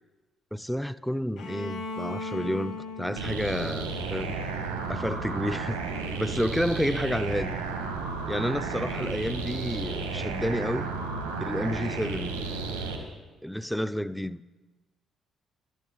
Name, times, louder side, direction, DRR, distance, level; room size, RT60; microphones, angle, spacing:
voice 1, 0.5-4.4 4.9-5.8 6.2-7.6 8.3-10.9 11.4-12.4 13.4-14.4, equal, ahead, 0.4 m, -30 dB
Bowed string instrument, 1.4-5.2, left 3 dB, 70° left, 2.5 m, -39 dB
sound 1, 3.2-13.0, right 4 dB, 90° right, 1.1 m, -33 dB
14.5 x 11.0 x 3.8 m
figure-of-eight pair, 45°, 0 cm